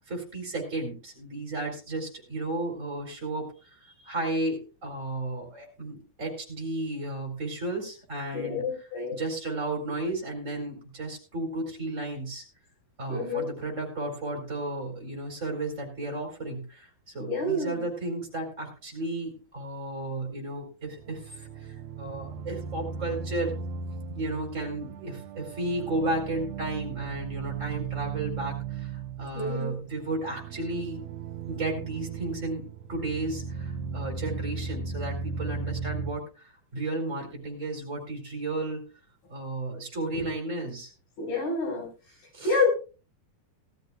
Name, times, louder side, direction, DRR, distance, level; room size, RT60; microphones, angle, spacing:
voice 1, 0.1-3.5 3.8-12.4 13.0-21.7 22.0-23.6 24.1-28.9 29.2-31.0 31.5-38.8 39.3-40.9 42.3-42.6, right 2 dB, 20° right, 1 dB, 3.9 m, -33 dB
voice 2, 8.3-9.2 13.1-13.5 17.2-17.8 29.4-29.7 40.1-40.2 41.2-41.9 42.4-42.7, left 3 dB, 85° left, 1 dB, 6.9 m, -28 dB
sound 1, 20.8-36.1, right 6 dB, 90° right, 1.5 m, -36 dB
19.0 x 13.0 x 2.4 m, 0.33 s
omnidirectional pair, 4.3 m